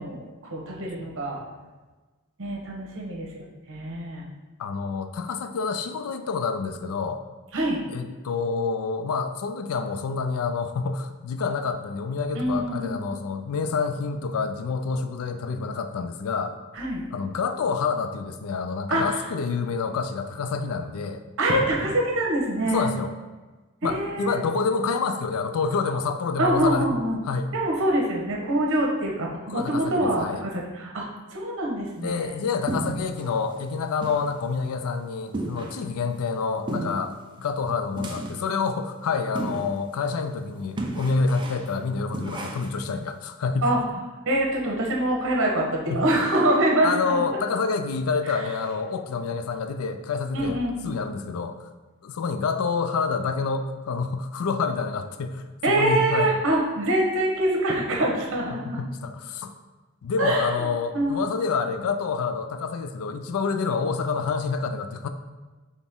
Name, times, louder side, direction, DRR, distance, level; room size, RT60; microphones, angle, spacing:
voice 1, 0.0-1.4 2.4-4.2 7.5-7.8 12.3-13.0 16.7-17.0 18.9-19.2 21.4-22.9 23.8-24.4 26.4-27.2 27.5-32.3 43.6-43.8 44.3-47.3 50.3-50.9 55.6-58.8 60.2-60.5 60.9-61.2, right 1 dB, 65° right, -1 dB, 1.0 m, -25 dB
voice 2, 1.4-1.7 4.6-7.2 7.9-16.5 17.1-21.2 22.7-23.1 23.8-27.5 29.5-30.4 32.0-43.7 45.9-46.0 46.8-51.7 52.0-56.4 58.5-59.5 60.0-65.1, left 5 dB, 70° left, 8 dB, 0.4 m, -28 dB
sound 1, 32.7-33.3 33.6-33.7 34.0-34.3 34.6-34.7 35.3-35.9 36.7-37.1 38.0-38.5 39.4-39.8 40.1-40.2 40.8-41.7 42.1-42.8, right 2 dB, 20° right, 0.5 m, -32 dB
4.2 x 3.4 x 3.6 m, 1.2 s
head